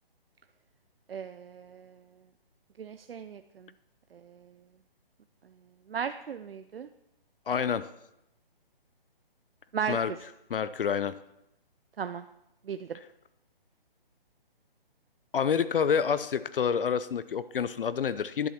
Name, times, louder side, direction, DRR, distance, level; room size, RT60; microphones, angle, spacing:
voice 1, 1.1-1.9 2.8-3.7 4.3-4.4 5.9-6.9 9.7-10.0 12.0-12.2 12.7-13.0, right 7 dB, 70° right, 10 dB, 0.6 m, -36 dB
voice 2, 7.5-7.9 9.9-10.1 10.5-11.2 15.3-18.5, left 7 dB, 65° left, 14 dB, 0.6 m, -28 dB
11.0 x 7.8 x 5.8 m, 0.87 s
hypercardioid pair, 160°, 30 cm